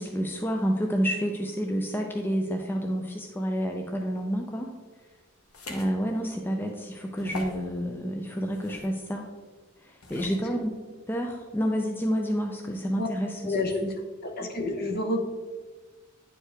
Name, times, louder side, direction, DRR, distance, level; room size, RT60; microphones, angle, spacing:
voice 1, 0.0-4.7 5.7-9.3 9.8-10.8 11.1-13.6 13.8-13.9, equal, 10° left, 2 dB, 0.4 m, -29 dB
sound 1, 5.5-5.9 6.4-6.5 7.2-7.6 8.5-8.9 10.0-10.4, left 2 dB, 90° left, 1.1 m, -40 dB
voice 2, 13.4-13.8 14.2-15.2, left 2 dB, 45° left, 3 dB, 0.9 m, -29 dB
9.9 x 4.6 x 3.3 m, 1.4 s
head